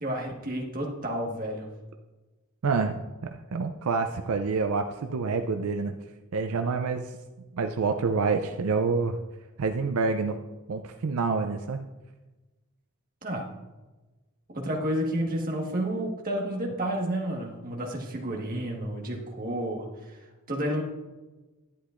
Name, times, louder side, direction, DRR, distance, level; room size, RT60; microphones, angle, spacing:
voice 1, 0.0-1.7 13.2-13.6 14.5-19.9 20.5-20.8, right 1 dB, 40° right, 0 dB, 1.5 m, -30 dB
voice 2, 2.6-3.0 3.3-5.9 6.3-7.1 7.5-9.2 9.6-10.4 10.7-11.8, right 4 dB, 80° right, 6 dB, 0.5 m, -27 dB
11.0 x 10.0 x 2.5 m, 1.2 s
head